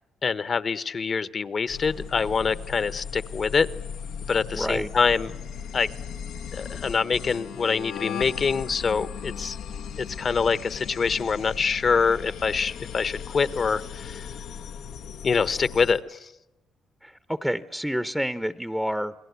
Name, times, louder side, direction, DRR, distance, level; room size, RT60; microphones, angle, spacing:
voice 1, 0.2-3.7 4.3-5.3 5.7-5.9 6.5-9.6 10.0-14.3 15.2-16.3, left 5 dB, 45° left, 1.0 m, -25 dB
sound 1, 1.7-16.0, left 7 dB, 80° left, 1.0 m, -37 dB
voice 2, 4.5-4.9 17.0-19.1, equal, ahead, 0.9 m, -28 dB
29.0 x 21.5 x 8.2 m
cardioid pair, 90°, 0 cm